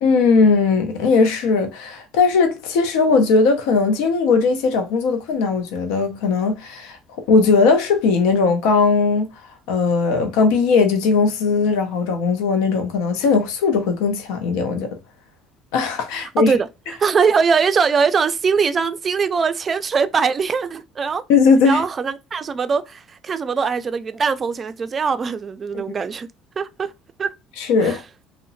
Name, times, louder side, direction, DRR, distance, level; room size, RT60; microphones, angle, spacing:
voice 1, 0.0-7.0 7.3-9.3 9.7-14.9 15.7-16.6 21.3-21.8 25.7-25.8 27.6-28.0, left 4 dB, 85° left, 0.5 m, -18 dB
voice 2, 16.2-16.7 17.0-21.2 21.6-26.3 26.6-26.9 27.2-27.3 27.8-28.0, right 5 dB, 30° right, 0.3 m, -21 dB
2.7 x 2.0 x 2.5 m
cardioid pair, 105°, 0 cm